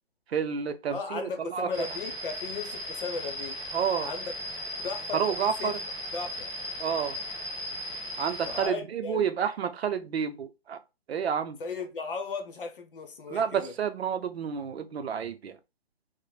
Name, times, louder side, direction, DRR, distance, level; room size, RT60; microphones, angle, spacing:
voice 1, 0.3-1.9 3.7-4.1 5.1-5.8 6.8-7.2 8.2-10.8 11.1-11.6 13.3-15.6, right 7 dB, 85° right, 0.5 m, -30 dB
voice 2, 0.9-3.6 4.0-4.3 4.8-5.8 6.1-6.5 8.4-9.3 11.6-13.7, left 4 dB, 60° left, 0.7 m, -36 dB
sound 1, 1.7-8.7, left 1 dB, 15° right, 0.4 m, -37 dB
2.4 x 2.0 x 3.1 m
hypercardioid pair, 170°, 31 cm